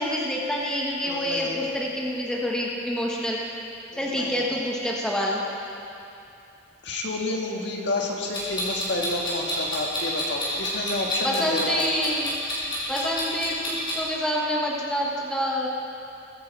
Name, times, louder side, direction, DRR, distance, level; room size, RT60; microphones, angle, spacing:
voice 1, 0.0-3.4 4.0-5.4 11.2-12.3 12.9-15.7, equal, 5° left, -3 dB, 1.4 m, -27 dB
voice 2, 1.0-1.7 3.9-4.5 6.8-11.8, left 2 dB, 65° left, 0 dB, 1.8 m, -30 dB
Clock, 8.3-14.0, equal, 25° left, 4.1 m, -29 dB
22.0 x 10.5 x 4.7 m, 2.7 s
head